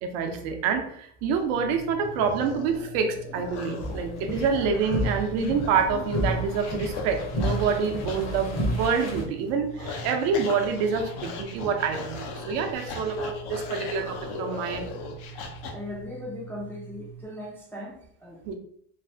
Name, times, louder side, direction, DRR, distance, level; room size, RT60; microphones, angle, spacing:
voice 1, 0.0-14.9 18.4-18.5, right 5 dB, 80° right, 5 dB, 0.6 m, -27 dB
sound 1, 1.4-15.7, left 4 dB, 65° left, 0.7 m, -39 dB
sound 2, 1.5-17.2, right 7 dB, 40° right, 0.6 m, -45 dB
sound 3, 3.8-9.2, equal, 35° left, 0.8 m, -31 dB
voice 2, 15.7-18.5, left 1 dB, 5° left, -3 dB, 0.3 m, -39 dB
3.2 x 2.0 x 2.6 m, 0.66 s
supercardioid pair, 105°, 43 cm